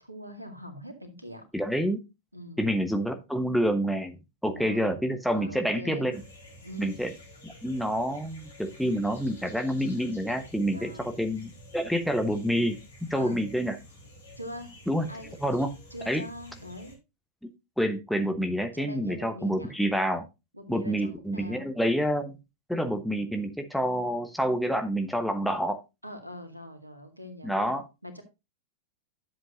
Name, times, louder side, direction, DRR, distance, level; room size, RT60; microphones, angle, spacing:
voice 1, 0.0-1.4 2.3-2.7 4.5-5.0 5.3-6.1 6.6-7.0 10.7-11.2 13.2-13.5 14.4-14.7 15.1-15.4 15.9-17.0 18.7-19.7 20.5-21.7 26.0-28.2, equal, 85° right, 6 dB, 2.1 m, -42 dB
voice 2, 1.5-2.0 2.6-4.2 4.4-6.1 6.8-7.1 7.4-12.8 13.1-13.8 14.9-15.1 15.4-15.7 16.1-16.2 17.8-20.2 20.7-22.4 22.7-25.8 27.4-27.8, equal, ahead, 6 dB, 1.0 m, -28 dB
sound 1, 6.1-17.0, left 1 dB, 75° left, 3.8 m, -50 dB
11.0 x 7.6 x 2.6 m, 0.25 s
figure-of-eight pair, 90°, 0 cm